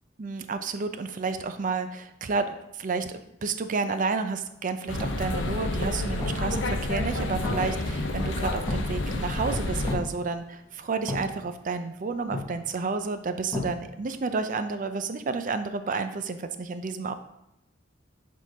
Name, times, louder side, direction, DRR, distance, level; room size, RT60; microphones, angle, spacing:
voice 1, 0.2-17.1, right 4 dB, 45° right, 9 dB, 0.5 m, -31 dB
sound 1, 4.8-13.8, left 2 dB, 15° left, 1.1 m, -38 dB
sound 2, 4.9-9.9, left 2 dB, 75° left, 0.8 m, -29 dB
7.4 x 3.8 x 3.9 m, 0.88 s
head